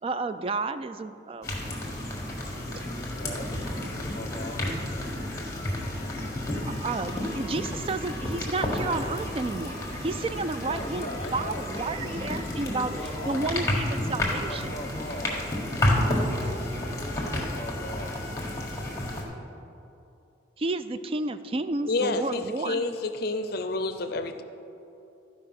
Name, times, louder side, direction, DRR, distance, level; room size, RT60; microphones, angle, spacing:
voice 1, 0.0-1.8 6.6-12.9 13.3-14.7 20.6-22.8, right 3 dB, 30° right, 12 dB, 0.3 m, -31 dB
sound 1, 1.4-19.2, left 1 dB, 15° left, 1.6 m, -31 dB
voice 2, 2.6-4.6 10.6-15.5 16.3-18.3, left 1 dB, 35° left, 3 dB, 1.1 m, -39 dB
voice 3, 21.8-24.4, left 3 dB, 55° left, 8 dB, 0.6 m, -29 dB
13.5 x 5.2 x 5.9 m, 2.7 s
head